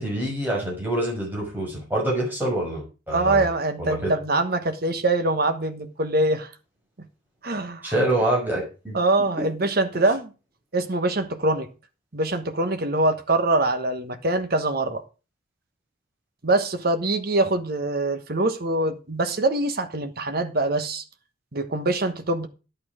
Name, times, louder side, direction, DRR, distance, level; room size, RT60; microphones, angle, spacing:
voice 1, 0.0-3.5 3.8-4.1 7.8-9.0 9.4-9.5, right 1 dB, 10° right, 6.0 m, -26 dB
voice 2, 3.1-6.5 7.4-7.9 8.9-10.3 10.7-11.7 12.1-15.0 16.4-21.0 21.5-22.5, right 2 dB, 50° right, 1.2 m, -24 dB
11.5 x 8.9 x 4.9 m
head